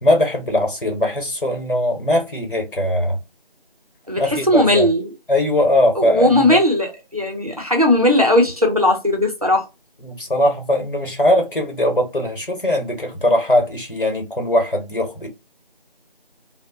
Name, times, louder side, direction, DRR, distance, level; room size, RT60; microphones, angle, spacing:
voice 1, 0.0-3.2 4.2-4.9 5.3-6.6 10.0-15.3, left 1 dB, 60° left, 1.1 m, -20 dB
voice 2, 4.1-5.1 6.0-9.7, left 1 dB, 40° right, 0.6 m, -17 dB
2.7 x 2.1 x 2.5 m
figure-of-eight pair, 175°, 29 cm